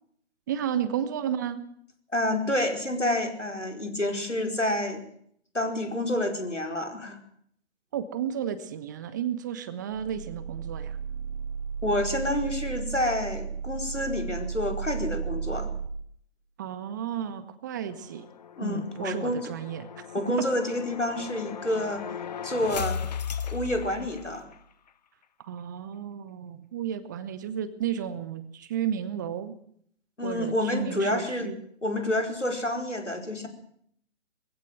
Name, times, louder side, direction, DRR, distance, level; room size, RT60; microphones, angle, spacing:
voice 1, 0.5-1.6 7.9-11.0 16.6-18.3 18.6-19.9 25.4-29.6 30.2-31.6, right 9 dB, 15° right, 13 dB, 0.8 m, -32 dB
voice 2, 2.1-5.0 5.5-7.2 11.8-15.7 18.6-19.5 20.1-22.0 22.4-23.0 23.4-24.5 30.2-31.5 31.8-33.5, left 1 dB, 85° left, 5 dB, 5.0 m, -28 dB
sound 1, 9.9-15.9, right 6 dB, 35° right, 1.7 m, -34 dB
sound 2, 17.9-24.6, left 7 dB, 35° left, 0.9 m, -37 dB
21.0 x 16.0 x 7.8 m, 0.65 s
figure-of-eight pair, 135°, 35 cm